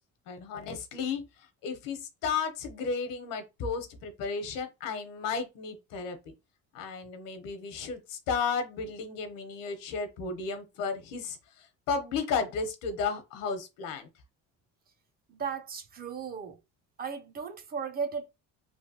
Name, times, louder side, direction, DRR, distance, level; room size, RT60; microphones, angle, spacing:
voice 1, 0.3-1.2 1.6-6.3 6.7-14.1, left 5 dB, 80° left, 0.9 m, -33 dB
voice 2, 15.3-16.6 17.0-18.3, right 6 dB, 30° right, 0.4 m, -36 dB
3.1 x 2.5 x 2.8 m
cardioid pair, 145°, 32 cm